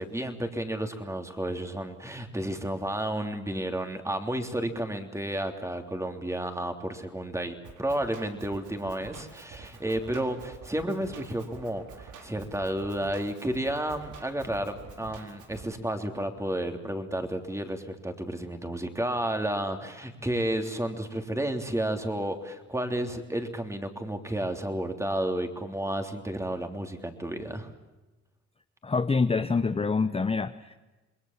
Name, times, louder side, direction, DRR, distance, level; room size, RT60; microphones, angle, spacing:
voice 1, 0.0-27.7, right 1 dB, 10° right, 5 dB, 3.3 m, -32 dB
Drum kit, 7.6-15.6, right 5 dB, 80° right, 4.3 m, -47 dB
voice 2, 28.8-30.7, left 4 dB, 20° left, 9 dB, 0.9 m, -26 dB
27.5 x 21.0 x 7.5 m, 1.1 s
cardioid pair, 90°, 30 cm